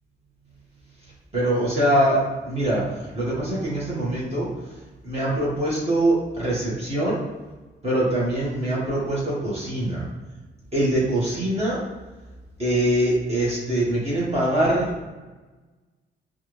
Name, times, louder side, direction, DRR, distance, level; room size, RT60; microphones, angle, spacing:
voice 1, 1.3-4.5 5.0-7.2 7.8-10.1 10.7-11.8 12.6-15.1, right 1 dB, 30° right, -7 dB, 1.5 m, -23 dB
4.5 x 2.4 x 3.2 m, 1.2 s
cardioid pair, 90°, 20 cm